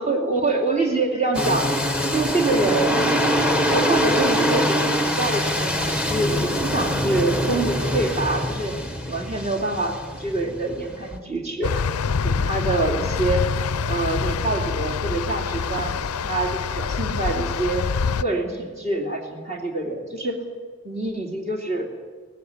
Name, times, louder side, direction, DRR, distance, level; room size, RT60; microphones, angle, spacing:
voice 1, 0.0-1.7 2.0-3.0 3.7-8.7 9.0-11.8 12.2-13.5 13.8-17.9 18.2-20.4 20.8-21.9, right 2 dB, 30° right, 0 dB, 2.8 m, -25 dB
sound 1, 1.3-11.2, equal, 5° right, 1.3 m, -24 dB
sound 2, 11.6-18.2, left 5 dB, 90° left, 0.5 m, -25 dB
18.0 x 15.5 x 10.0 m, 1.5 s
head